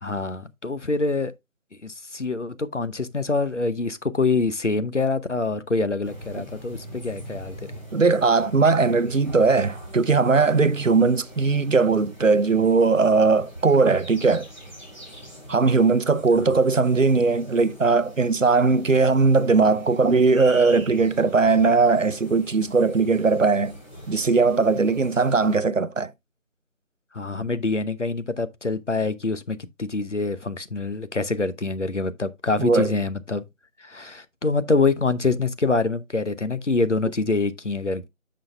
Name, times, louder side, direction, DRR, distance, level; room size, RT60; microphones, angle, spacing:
voice 1, 0.0-1.3 1.8-7.6 16.4-16.5 27.1-33.4 33.8-38.1, left 3 dB, 60° left, 0.8 m, -25 dB
sound 1, 6.0-25.6, equal, 35° left, 2.6 m, -43 dB
voice 2, 7.9-14.5 15.5-23.8 24.1-26.1 32.6-32.9, right 4 dB, 70° right, 0.7 m, -19 dB
9.8 x 6.3 x 2.2 m
figure-of-eight pair, 175°, 40 cm